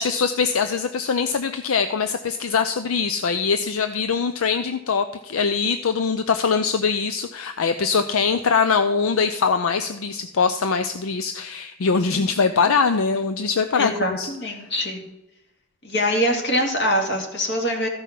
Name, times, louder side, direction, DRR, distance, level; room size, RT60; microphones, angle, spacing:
voice 1, 0.0-14.3, left 5 dB, 75° left, 9 dB, 0.5 m, -22 dB
voice 2, 13.8-15.0 15.8-17.9, equal, 50° left, 1 dB, 2.3 m, -24 dB
14.0 x 5.5 x 5.9 m, 0.96 s
head